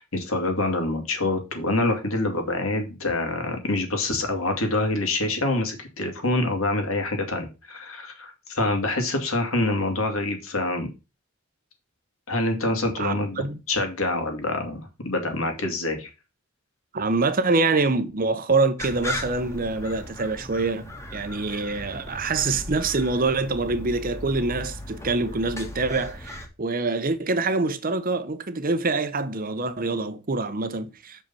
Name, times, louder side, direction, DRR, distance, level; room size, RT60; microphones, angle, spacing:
voice 1, 0.0-10.9 12.3-13.4 13.7-16.1, left 2 dB, 75° left, 2.4 m, -26 dB
voice 2, 13.0-13.6 16.9-31.2, right 3 dB, 40° right, 0.8 m, -25 dB
sound 1, 18.8-26.5, left 1 dB, 15° left, 1.6 m, -37 dB
6.6 x 5.2 x 5.5 m
head